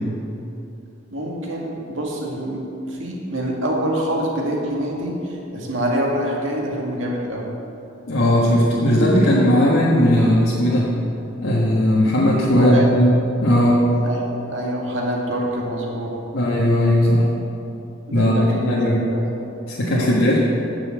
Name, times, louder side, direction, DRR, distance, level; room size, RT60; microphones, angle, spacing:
voice 1, 1.1-7.5 12.6-12.9 14.0-16.3 18.1-19.3 19.9-20.2, equal, 85° right, -2 dB, 2.0 m, -26 dB
voice 2, 8.1-10.9 11.4-13.1 13.4-13.9 16.3-17.3 18.1-19.1 19.7-20.4, equal, 90° left, -6 dB, 1.4 m, -17 dB
9.1 x 6.9 x 7.7 m, 2.8 s
head